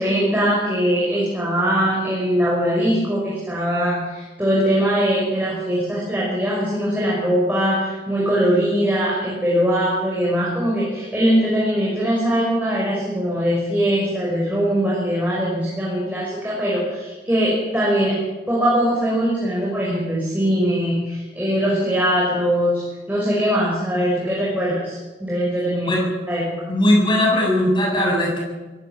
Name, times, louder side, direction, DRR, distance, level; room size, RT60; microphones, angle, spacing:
voice 1, 0.0-18.2 18.5-25.9 26.3-26.5, equal, 10° right, -6 dB, 6.0 m, -21 dB
voice 2, 26.7-28.4, left 1 dB, 25° left, -1 dB, 7.3 m, -18 dB
24.5 x 16.5 x 7.3 m, 1.2 s
head